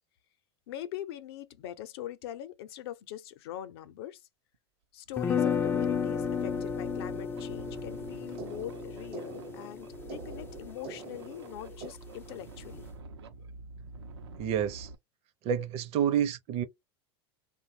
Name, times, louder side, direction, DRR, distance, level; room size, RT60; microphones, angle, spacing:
voice 1, 0.7-4.2 4.9-12.9, left 12 dB, 70° left, 0.6 m, -42 dB
sound 1, 4.5-4.6 5.1-15.0, right 3 dB, 85° right, 0.6 m, -47 dB
sound 2, 5.2-11.1, left 6 dB, 15° left, 0.3 m, -33 dB
sound 3, 6.3-11.9, right 4 dB, 70° right, 1.0 m, -47 dB
voice 2, 14.4-14.9 15.4-16.6, right 9 dB, 50° right, 0.6 m, -29 dB
3.0 x 2.2 x 2.7 m
hypercardioid pair, 100°, 13 cm